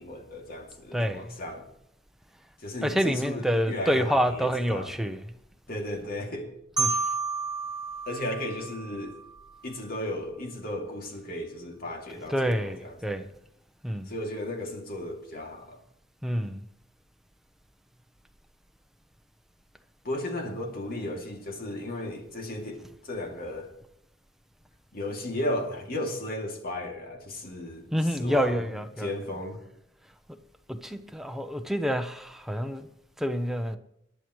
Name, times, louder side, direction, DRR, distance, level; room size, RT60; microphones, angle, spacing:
voice 1, 0.0-1.6 2.6-4.9 5.7-6.5 8.1-9.2 9.6-13.3 14.1-15.8 20.0-23.7 24.9-29.6, left 1 dB, 55° left, 2.6 m, -35 dB
voice 2, 0.9-1.4 2.8-5.2 6.8-7.0 12.3-13.3 13.8-14.1 16.2-16.6 27.9-29.1 30.3-30.4 30.7-32.9 33.2-33.8, equal, ahead, 0.8 m, -28 dB
Marimba xylophone, 6.8-9.6, right 4 dB, 25° right, 2.9 m, -31 dB
22.0 x 10.5 x 3.2 m
head